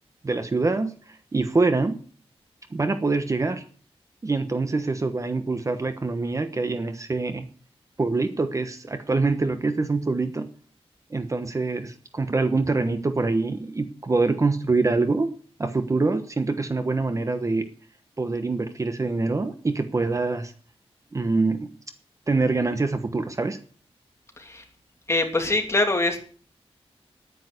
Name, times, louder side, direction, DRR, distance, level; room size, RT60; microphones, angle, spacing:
voice 1, 0.2-2.0 2.7-3.6 4.2-7.4 8.0-10.5 11.1-15.3 15.6-17.7 18.2-20.5 21.1-21.7 22.3-23.6, right 3 dB, 30° right, 9 dB, 1.1 m, -25 dB
voice 2, 25.1-26.2, left 2 dB, 25° left, 3 dB, 2.8 m, -23 dB
10.5 x 9.7 x 7.8 m, 0.43 s
wide cardioid pair, 125°, 10 cm